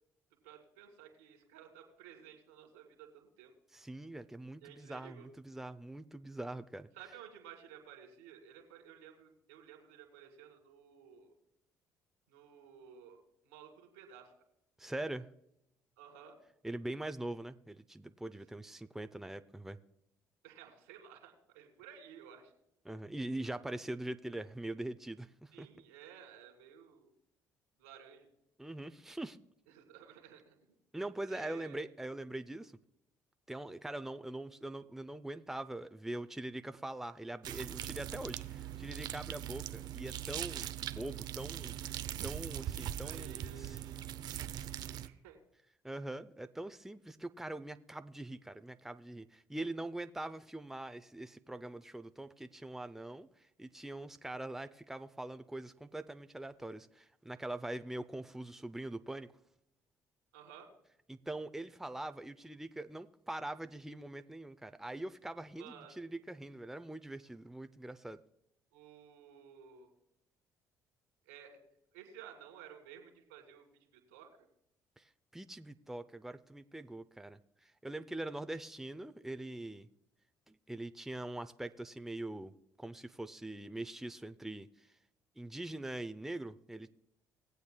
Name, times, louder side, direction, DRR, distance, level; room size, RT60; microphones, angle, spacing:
voice 1, 0.4-3.5 4.6-5.3 6.9-11.3 12.3-13.2 13.4-14.3 16.0-16.4 20.4-22.5 25.5-27.1 27.8-28.3 29.7-30.6 31.3-31.8 43.0-44.0 44.3-45.4 60.3-60.7 65.6-66.0 68.7-69.9 71.3-71.6 71.9-73.6 73.9-74.3, right 8 dB, 90° right, 3 dB, 2.3 m, -54 dB
voice 2, 3.7-6.9 14.8-15.3 16.6-19.8 22.8-25.7 28.6-29.4 30.9-32.7 33.5-42.0 42.2-43.8 44.6-44.7 45.8-59.3 61.1-68.2 75.0-79.9 80.5-82.5 82.8-84.9 85.4-86.9, right 1 dB, 5° right, 10 dB, 0.6 m, -43 dB
sound 1, 37.4-45.1, right 11 dB, 65° right, 0.6 m, -41 dB
20.0 x 8.0 x 2.2 m, 0.79 s
hypercardioid pair, 60°, 8 cm